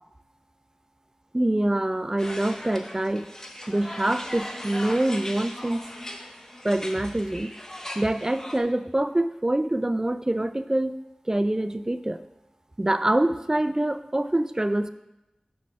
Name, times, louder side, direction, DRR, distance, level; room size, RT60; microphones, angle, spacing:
voice 1, 1.3-3.3 3.7-5.8 6.6-7.5 8.0-10.9 11.3-12.2 12.8-14.9, right 1 dB, 25° right, 11 dB, 0.4 m, -25 dB
sound 1, 2.2-8.6, left 1 dB, 25° left, 0.8 m, -38 dB
6.3 x 4.7 x 5.6 m, 0.92 s
wide cardioid pair, 55°, 2 cm